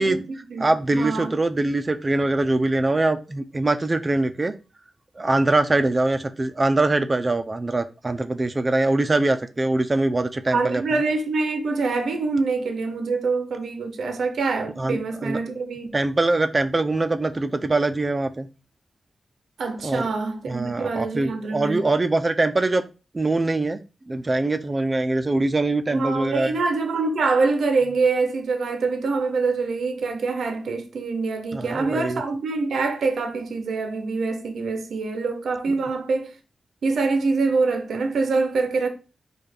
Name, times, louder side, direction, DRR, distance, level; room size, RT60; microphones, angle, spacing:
voice 1, 0.0-1.3 10.5-15.9 19.6-21.9 25.9-36.3 36.8-38.9, right 4 dB, 85° right, 0.6 m, -25 dB
voice 2, 0.6-4.5 5.2-10.8 14.8-15.4 15.9-18.5 19.8-20.1 20.5-22.8 23.1-23.8 24.1-26.5 31.5-32.2, right 2 dB, 30° right, 0.5 m, -23 dB
4.9 x 2.4 x 4.3 m
wide cardioid pair, 95°, 0 cm